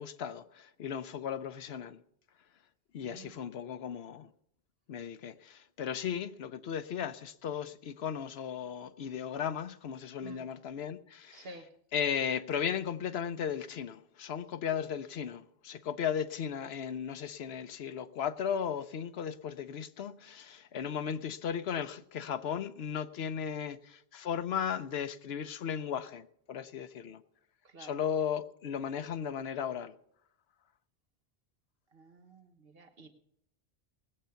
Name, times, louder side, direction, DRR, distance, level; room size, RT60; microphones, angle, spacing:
voice 1, 0.0-2.0 2.9-4.3 4.9-11.5 11.9-27.2 27.8-29.9, left 8 dB, 80° left, 0.9 m, -36 dB
voice 2, 3.0-3.4 10.2-10.4 11.3-11.7 27.6-27.9 31.9-33.1, right 3 dB, 65° right, 1.3 m, -51 dB
19.5 x 7.9 x 5.7 m
omnidirectional pair, 1.0 m